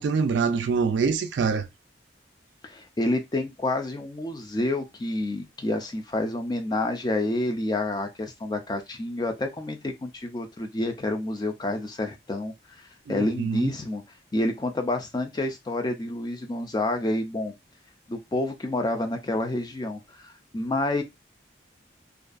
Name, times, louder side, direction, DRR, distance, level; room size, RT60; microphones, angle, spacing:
voice 1, 0.0-1.6 13.1-13.7, right 5 dB, 75° right, 0.3 m, -25 dB
voice 2, 2.6-14.0 14.3-17.5 18.1-21.0, left 2 dB, 20° left, 0.4 m, -29 dB
2.5 x 2.3 x 2.4 m
head